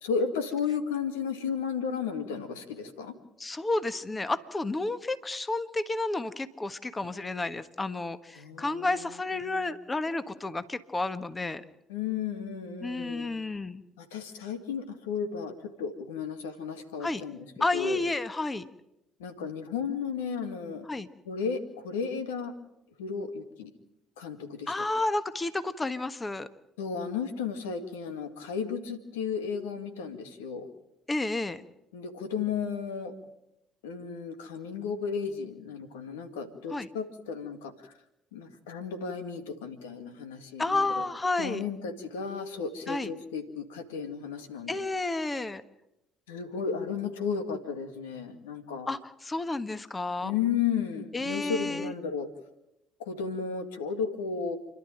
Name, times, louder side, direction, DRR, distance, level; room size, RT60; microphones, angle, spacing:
voice 1, 0.0-3.1 8.4-8.9 9.4-9.7 11.9-13.4 14.0-17.4 17.7-18.0 19.2-20.9 21.3-22.5 23.0-23.7 24.2-24.9 26.8-30.7 31.9-33.1 33.8-37.9 38.3-40.9 41.4-44.7 46.3-48.9 50.2-52.3 53.0-54.6, left 6 dB, 85° left, 9 dB, 2.0 m, -34 dB
voice 2, 3.4-11.6 12.8-13.8 17.0-17.2 17.6-18.7 20.8-21.1 24.7-26.5 31.1-31.6 36.7-36.9 40.6-41.6 42.9-43.1 44.7-45.6 48.9-50.3 51.1-51.9, left 2 dB, 25° left, 12 dB, 1.4 m, -31 dB
30.0 x 12.0 x 9.0 m, 0.85 s
hypercardioid pair, 60°, 0 cm